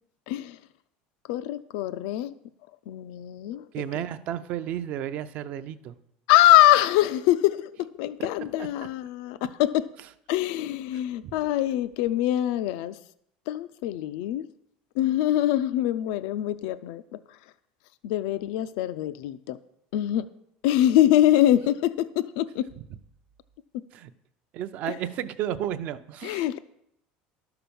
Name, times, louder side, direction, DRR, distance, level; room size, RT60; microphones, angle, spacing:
voice 1, 0.3-0.6 1.3-2.3 2.9-4.0 6.3-9.9 10.3-13.0 13.5-14.5 15.0-17.4 18.0-19.6 19.9-20.3 20.6-22.7 24.9-25.0 26.2-26.6, left 13 dB, 70° left, 0.4 m, -24 dB
voice 2, 3.7-6.0 8.6-8.7 11.2-11.3 23.9-24.1 24.5-26.5, right 11 dB, 45° right, 0.6 m, -32 dB
12.0 x 5.8 x 7.0 m
cardioid pair, 165°, 4 cm